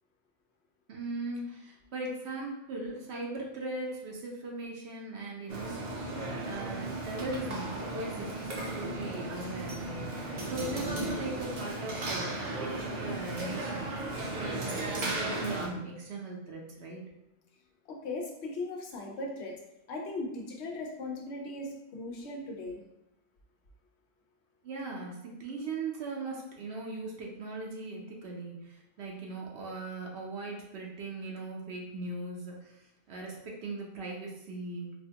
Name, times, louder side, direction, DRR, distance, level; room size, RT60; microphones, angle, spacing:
voice 1, 0.9-5.9 6.4-13.9 14.4-17.0 24.6-32.8 33.1-34.9, right 2 dB, 75° right, -1 dB, 0.9 m, -39 dB
sound 1, 5.5-15.7, right 2 dB, 50° right, 0.6 m, -35 dB
voice 2, 17.9-19.6 19.9-22.8, left 2 dB, 80° left, 0 dB, 1.0 m, -38 dB
4.3 x 2.1 x 2.8 m, 0.91 s
omnidirectional pair, 1.1 m